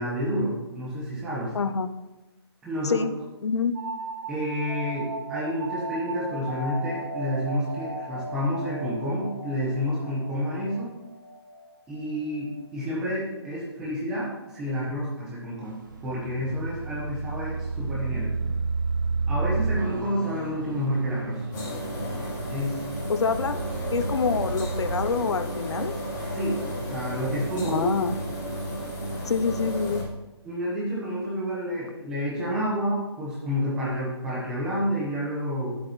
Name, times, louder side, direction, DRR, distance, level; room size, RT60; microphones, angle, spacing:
voice 1, 0.0-1.5 2.6-3.0 4.3-10.9 11.9-18.6 19.3-21.4 22.5-22.8 26.3-26.6 26.9-27.8 30.4-35.8, equal, 5° right, -6 dB, 1.1 m, -29 dB
voice 2, 1.5-1.9 2.8-3.1 3.4-3.7 23.1-23.6 23.9-25.9 27.7-28.1 29.3-30.1, left 5 dB, 85° left, 11 dB, 0.6 m, -26 dB
sound 1, 3.7-13.1, right 2 dB, 70° right, 2.1 m, -37 dB
sound 2, 15.6-25.1, right 3 dB, 45° right, 1.1 m, -31 dB
sound 3, 21.5-30.0, equal, 40° left, 3.4 m, -33 dB
9.7 x 7.9 x 3.1 m, 1.1 s
hypercardioid pair, 180°, 14 cm